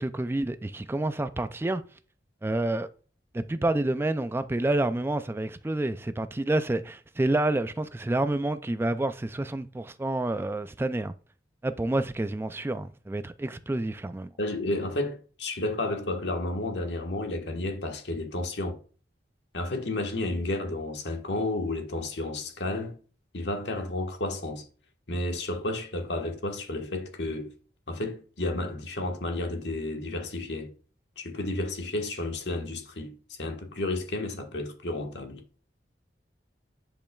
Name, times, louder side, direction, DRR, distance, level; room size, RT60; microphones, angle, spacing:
voice 1, 0.0-1.8 2.4-2.9 3.3-11.1 11.6-14.3, right 2 dB, 15° right, 0.3 m, -28 dB
voice 2, 14.4-18.8 19.5-23.0 23.3-24.7 25.1-27.5 27.9-30.7 31.2-35.4, left 2 dB, 75° left, 1.4 m, -32 dB
10.0 x 5.2 x 2.3 m
head